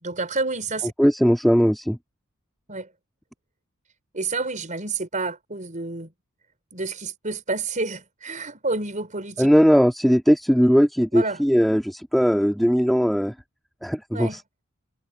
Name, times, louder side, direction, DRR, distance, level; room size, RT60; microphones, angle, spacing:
voice 1, 0.0-0.9 2.7-2.9 4.1-6.1 6.7-9.5 11.1-11.4 14.1-14.4, right 3 dB, 35° right, 5.8 m, -29 dB
voice 2, 1.0-2.0 9.4-13.3 13.8-14.3, equal, ahead, 3.4 m, -19 dB
head